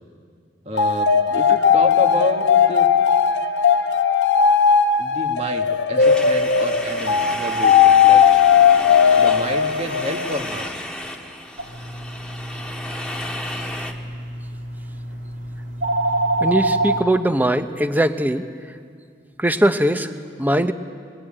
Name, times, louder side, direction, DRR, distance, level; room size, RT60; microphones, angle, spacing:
voice 1, 0.6-2.9 5.0-8.3 9.2-10.7, equal, 35° right, 4 dB, 1.7 m, -29 dB
sound 1, 0.7-10.5, left 7 dB, 75° left, 1.0 m, -17 dB
sound 2, 6.0-13.9, left 1 dB, 5° left, 1.6 m, -33 dB
sound 3, 11.6-17.0, right 2 dB, 75° right, 2.7 m, -26 dB
voice 2, 16.4-18.4 19.4-20.1 20.4-20.7, right 1 dB, 10° right, 9 dB, 0.9 m, -20 dB
22.0 x 21.0 x 8.8 m, 2.1 s
head